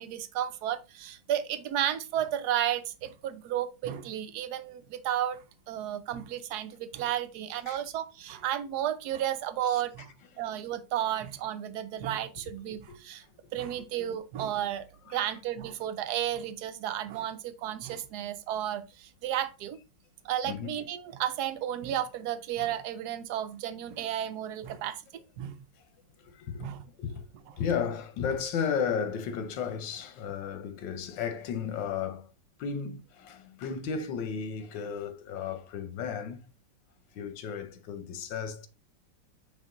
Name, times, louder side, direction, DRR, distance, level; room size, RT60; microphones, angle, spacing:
voice 1, 0.0-10.1 10.4-13.2 13.5-14.8 15.1-19.8 20.2-25.6 26.6-26.8, right 11 dB, 70° right, 1.2 m, -33 dB
voice 2, 12.9-13.3 15.1-15.3 20.4-20.8 26.2-27.2 27.5-32.3 32.6-36.4 37.1-38.7, left 7 dB, 85° left, 1.6 m, -34 dB
8.7 x 2.9 x 3.8 m
omnidirectional pair, 2.0 m